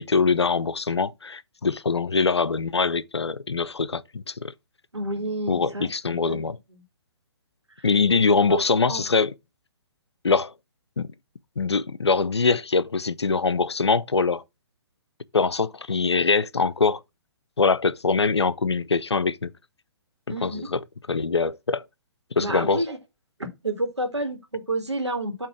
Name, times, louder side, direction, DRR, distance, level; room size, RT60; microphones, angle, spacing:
voice 1, 0.0-4.5 5.5-6.6 7.8-9.3 10.2-10.5 11.0-11.1 11.6-14.4 15.3-17.0 17.6-19.5 20.4-20.8 21.1-21.8 22.3-22.8, left 4 dB, 75° left, 0.6 m, -23 dB
voice 2, 4.9-6.8 7.8-7.9 8.5-9.0 20.3-20.6 22.4-23.0 23.4-25.5, right 1 dB, 85° right, 1.8 m, -30 dB
8.4 x 3.0 x 5.9 m
figure-of-eight pair, 130°, 14 cm